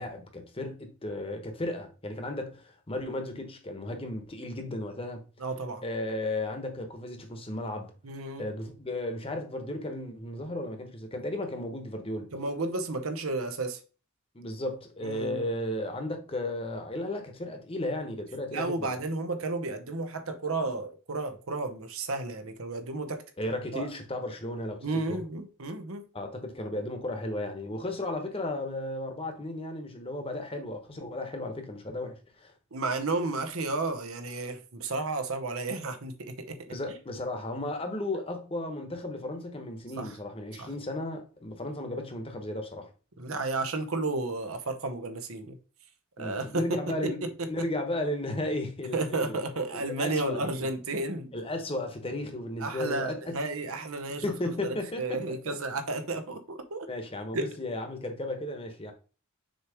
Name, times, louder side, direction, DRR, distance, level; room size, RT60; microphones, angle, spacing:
voice 1, 0.0-5.3 5.8-7.9 8.4-12.3 14.3-19.0 23.4-25.2 26.1-32.5 36.7-42.9 46.2-47.2 47.5-50.7 51.3-53.2 54.2-55.6 56.9-58.9, left 1 dB, 25° left, 1.0 m, -34 dB
voice 2, 5.4-5.8 8.0-8.5 12.3-13.8 15.0-15.4 18.5-23.2 23.7-23.9 24.8-26.0 32.7-36.6 40.0-40.2 40.6-40.7 43.2-45.6 46.2-47.5 48.9-51.3 52.6-54.2 54.6-56.9 57.3-57.5, right 2 dB, 75° right, 0.9 m, -32 dB
6.5 x 3.1 x 4.8 m
head